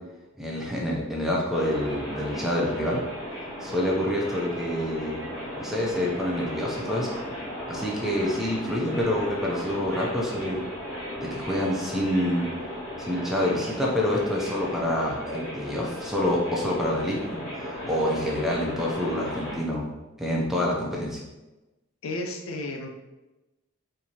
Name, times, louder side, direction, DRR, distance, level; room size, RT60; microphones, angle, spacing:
voice 1, 0.4-3.0 3.6-5.2 5.6-7.1 7.7-10.6 11.2-12.5 13.0-17.4 17.9-19.9 20.2-21.2, left 1 dB, ahead, -3 dB, 0.5 m, -27 dB
sound 1, 1.5-19.6, equal, 20° left, 1.1 m, -36 dB
voice 2, 22.0-22.9, left 2 dB, 80° left, 3 dB, 0.5 m, -32 dB
4.4 x 2.6 x 2.8 m, 1.1 s
head